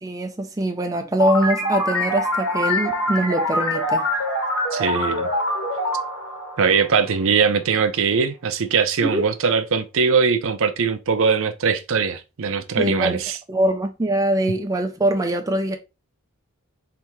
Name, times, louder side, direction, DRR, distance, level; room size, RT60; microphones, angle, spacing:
voice 1, 0.0-4.1 9.0-9.2 12.8-13.2 13.5-15.8, right 1 dB, 15° right, 0.4 m, -23 dB
sound 1, 1.2-7.4, left 1 dB, 80° left, 1.8 m, -24 dB
voice 2, 4.7-5.3 6.6-13.4, right 5 dB, 65° right, 0.5 m, -21 dB
3.5 x 2.7 x 4.5 m
head